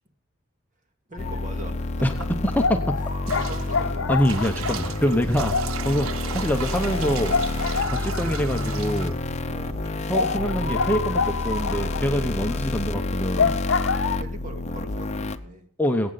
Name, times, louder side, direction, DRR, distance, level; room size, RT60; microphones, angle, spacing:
sound 1, 1.1-1.6 1.9-2.0 2.6-8.9 9.3-9.4 9.7-9.8 10.1-14.2, left 5 dB, 70° left, 0.7 m, -28 dB
voice 1, 1.1-2.3 3.3-4.4 4.7-5.2 6.3-6.4 9.4-9.9 14.2-15.7, right 1 dB, 40° right, 4 dB, 2.1 m, -41 dB
sound 2, 1.2-15.4, left 2 dB, 35° left, 0.8 m, -29 dB
sound 3, 3.3-10.2, right 8 dB, 80° right, 0.5 m, -36 dB
voice 2, 4.1-5.5 5.8-7.6 7.8-9.1 10.1-13.6 15.8-16.1, equal, 10° left, 4 dB, 0.8 m, -25 dB
22.0 x 8.8 x 4.0 m, 0.62 s
head